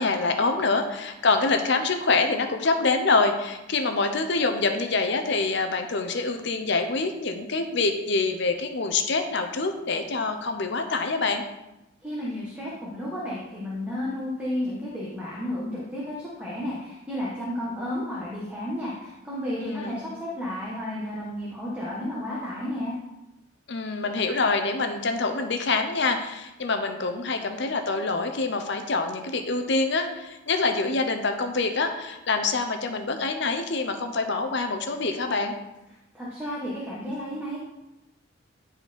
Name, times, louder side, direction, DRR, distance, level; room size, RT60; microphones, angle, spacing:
voice 1, 0.0-11.4 19.6-20.0 23.7-35.5, left 3 dB, 60° left, 6 dB, 0.8 m, -25 dB
voice 2, 12.0-23.0 36.1-37.6, left 1 dB, 10° right, -7 dB, 1.4 m, -32 dB
10.5 x 4.3 x 4.3 m, 0.97 s
head